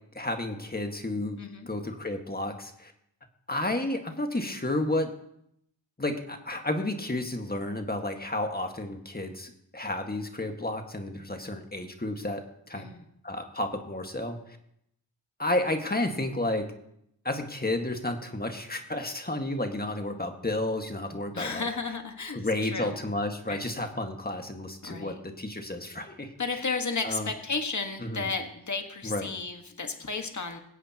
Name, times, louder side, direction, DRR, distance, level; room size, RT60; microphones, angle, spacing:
voice 1, 0.2-1.4 1.7-2.9 3.5-5.1 6.0-12.9 13.2-14.4 15.4-16.7 17.2-21.7 22.3-26.6 27.0-27.3 28.0-28.3 29.0-29.3, left 1 dB, 20° left, 5 dB, 1.7 m, -31 dB
voice 2, 1.4-1.7 12.7-13.0 21.3-22.4 22.6-23.0 23.5-23.6 24.8-25.2 26.4-30.6, left 4 dB, 40° left, 5 dB, 1.6 m, -33 dB
22.5 x 8.2 x 3.0 m, 0.75 s
cardioid pair, 45°, 43 cm